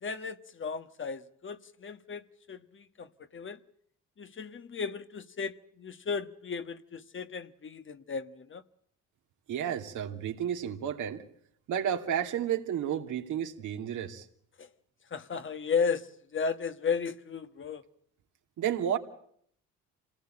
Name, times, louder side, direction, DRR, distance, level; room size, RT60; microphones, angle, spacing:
voice 1, 0.0-3.6 4.2-8.6 14.6-14.7 15.1-17.8, left 5 dB, 40° left, 1.4 m, -35 dB
voice 2, 9.5-11.2 11.7-14.3 18.6-19.0, right 9 dB, 80° right, 2.6 m, -31 dB
27.0 x 18.5 x 8.8 m
cardioid pair, 90°, 30 cm